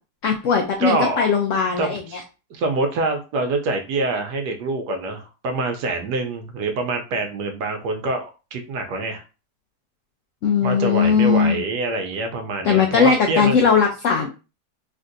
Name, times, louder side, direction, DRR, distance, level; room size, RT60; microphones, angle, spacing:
voice 1, 0.2-2.2 10.4-11.6 12.6-14.3, left 6 dB, 80° left, 3 dB, 0.7 m, -19 dB
voice 2, 0.8-1.3 1.8-2.2 2.5-8.2 8.5-9.2 10.6-13.6, right 2 dB, 75° right, 5 dB, 1.2 m, -25 dB
3.3 x 2.6 x 2.5 m, 0.31 s
omnidirectional pair, 1.9 m